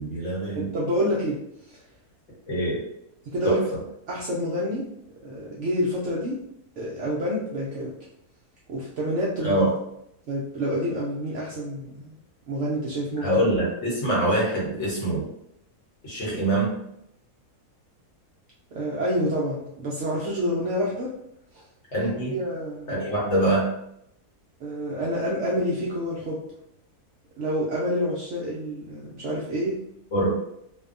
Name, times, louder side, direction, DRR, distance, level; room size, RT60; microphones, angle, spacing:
voice 1, 0.0-0.7 2.5-2.8 3.4-3.8 9.4-9.7 13.2-15.3 16.0-16.7 21.9-22.4 22.9-23.7 30.1-30.4, right 1 dB, 55° left, -5 dB, 1.0 m, -24 dB
voice 2, 0.6-1.4 1.7-1.8 3.3-3.6 4.1-4.8 5.2-6.4 6.8-7.9 8.7-9.7 10.3-12.2 12.5-13.3 18.7-21.1 21.5-21.6 22.3-23.1 24.6-26.4 27.4-29.7, equal, 70° right, -6 dB, 0.7 m, -28 dB
2.6 x 2.1 x 2.5 m, 0.78 s
omnidirectional pair, 1.7 m